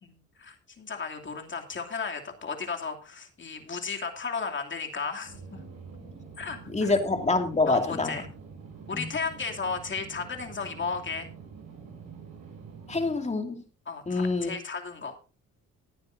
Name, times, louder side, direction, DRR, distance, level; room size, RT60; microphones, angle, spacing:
voice 1, 0.0-5.6 6.4-6.9 7.7-8.2 8.9-11.3 13.9-15.1, left 5 dB, 40° left, 2.8 m, -34 dB
sound 1, 5.2-13.1, right 5 dB, 60° right, 6.2 m, -46 dB
voice 2, 6.7-8.1 8.9-9.0 12.9-13.6 14.1-14.5, left 3 dB, 20° left, 2.5 m, -26 dB
19.0 x 9.5 x 2.7 m
cardioid pair, 90°, 30 cm